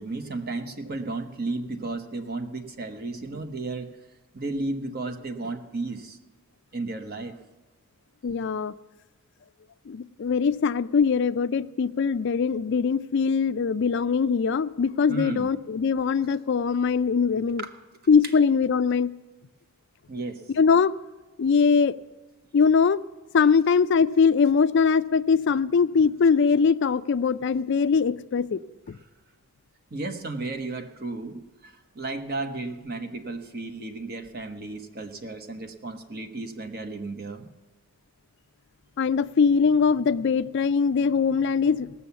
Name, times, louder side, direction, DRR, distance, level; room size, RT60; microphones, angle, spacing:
voice 1, 0.0-4.0 4.3-6.2 6.7-7.4 15.1-15.5 17.6-17.7 20.1-20.4 29.9-37.5, right 2 dB, 45° right, 6 dB, 1.0 m, -33 dB
voice 2, 8.2-8.7 9.9-17.7 18.1-19.1 20.6-20.9 21.4-22.0 22.5-23.0 23.3-28.6 28.9-29.0 39.0-41.9, left 5 dB, 55° left, 14 dB, 0.4 m, -22 dB
17.5 x 7.0 x 7.0 m, 1.1 s
head